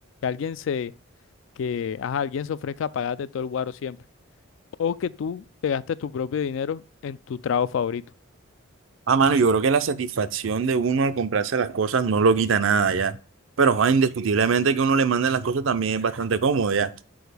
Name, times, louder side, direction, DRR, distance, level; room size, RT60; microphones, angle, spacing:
voice 1, 0.2-0.9 1.6-4.0 4.8-8.0, left 7 dB, 65° left, 0.3 m, -28 dB
voice 2, 9.1-13.1 13.6-16.9, right 5 dB, 70° right, 0.5 m, -21 dB
6.2 x 4.7 x 3.3 m
head